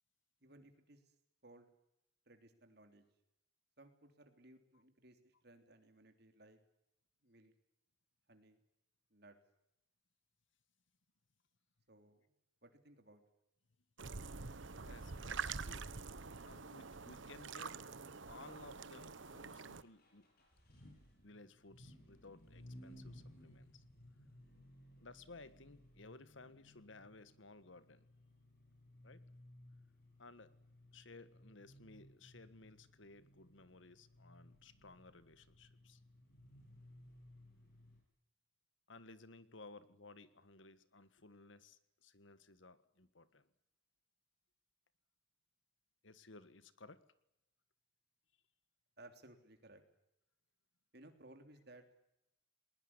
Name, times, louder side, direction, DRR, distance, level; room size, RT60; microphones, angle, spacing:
voice 1, 0.4-1.1 1.4-1.7 2.2-3.1 3.8-6.6 7.2-7.5 8.3-8.6 9.1-9.4 11.9-12.4 12.6-13.2 49.0-49.8 50.9-51.8, right 1 dB, 55° right, 7 dB, 3.4 m, -61 dB
sound 1, 14.0-19.8, right 5 dB, 75° right, 1.1 m, -46 dB
voice 2, 14.8-15.9 16.4-17.8 18.3-20.3 20.8-20.9 21.2-23.8 25.0-28.0 29.0-29.2 30.2-30.5 30.9-36.0 38.9-43.5 46.0-47.0, left 3 dB, 75° left, 14 dB, 1.6 m, -58 dB
sound 2, 19.7-38.0, left 1 dB, 50° left, 7.8 m, -60 dB
20.0 x 20.0 x 9.7 m, 0.82 s
head